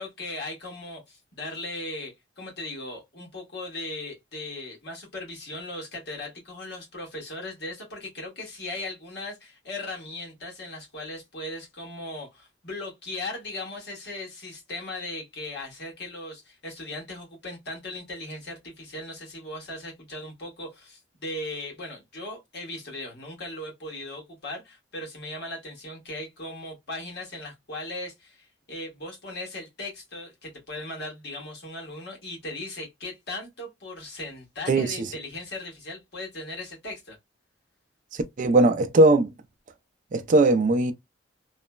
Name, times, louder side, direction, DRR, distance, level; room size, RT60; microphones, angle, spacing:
voice 1, 0.0-37.2, left 2 dB, 60° left, 1.4 m, -38 dB
voice 2, 34.7-35.1 38.1-39.3 40.1-40.9, right 2 dB, 45° right, 0.4 m, -20 dB
3.0 x 2.0 x 2.2 m
head